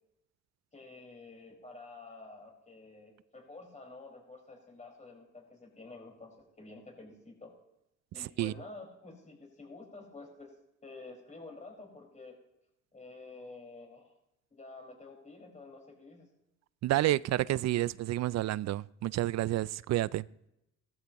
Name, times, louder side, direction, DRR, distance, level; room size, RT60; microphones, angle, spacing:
voice 1, 0.7-7.5 8.1-10.5 10.8-12.3 12.9-14.1 14.5-16.3, left 3 dB, 25° left, 4.9 m, -50 dB
voice 2, 16.8-20.3, right 15 dB, 60° right, 0.4 m, -29 dB
17.0 x 14.0 x 3.0 m
cardioid pair, 90°, 30 cm